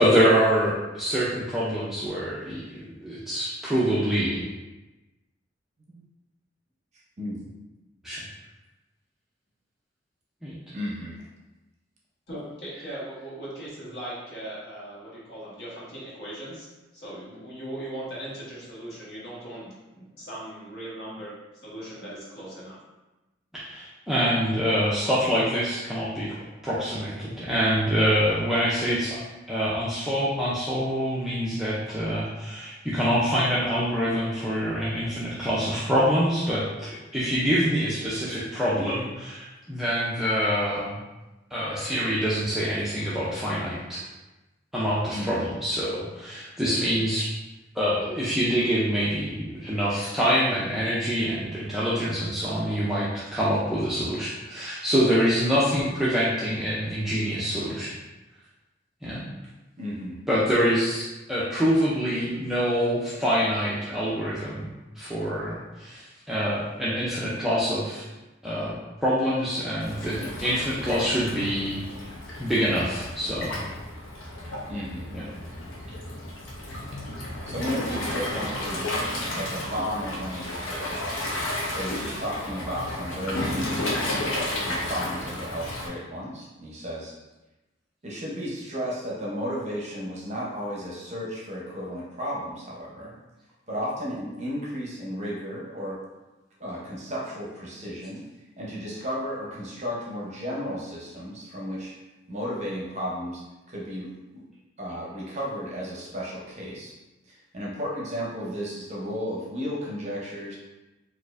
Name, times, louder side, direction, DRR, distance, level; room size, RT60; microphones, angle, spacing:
voice 1, 0.0-4.4 8.0-8.2 10.4-10.6 23.5-26.4 26.6-29.2 29.5-41.0 41.5-44.0 44.7-47.3 47.7-57.9 59.0-59.2 60.3-68.1 68.4-68.7 69.0-71.8 72.4-73.6 75.1-75.2, equal, ahead, -9 dB, 0.4 m, -25 dB
voice 2, 7.2-7.5 10.7-11.1 45.1-45.5 59.8-60.2 74.7-75.1 76.9-77.0 77.5-81.1 81.7-84.1 84.7-87.2 88.0-93.1 93.7-96.0 96.6-98.2 98.6-101.9 102.3-104.4 104.8-106.9 107.3-110.6, equal, 35° right, -4 dB, 0.7 m, -34 dB
voice 3, 12.3-16.7 16.9-21.3 21.6-22.8, right 1 dB, 55° left, -7 dB, 1.2 m, -39 dB
Waves surf, 69.8-85.9, left 1 dB, 85° left, 0.7 m, -32 dB
4.2 x 2.4 x 2.4 m, 1.1 s
head